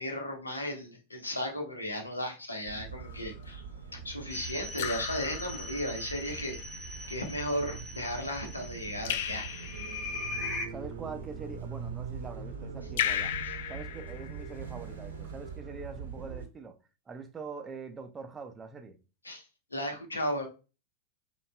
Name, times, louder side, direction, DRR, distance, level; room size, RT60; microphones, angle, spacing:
voice 1, 0.0-3.6 3.9-6.6 7.1-9.5 13.4-13.5 19.2-19.4 19.7-20.5, left 1 dB, 80° left, 0.9 m, -35 dB
sound 1, 2.6-16.5, right 5 dB, 65° right, 0.7 m, -42 dB
Raindrop / Drip, 3.0-3.4 4.8-6.1 9.1-10.2 13.0-14.7, left 10 dB, 55° left, 0.3 m, -35 dB
sound 2, 4.3-10.7, left 2 dB, 25° left, 0.8 m, -41 dB
voice 2, 10.7-13.3 13.7-16.7 17.1-19.0, right 4 dB, 20° right, 0.5 m, -43 dB
5.2 x 2.4 x 2.2 m
figure-of-eight pair, 90°, 0 cm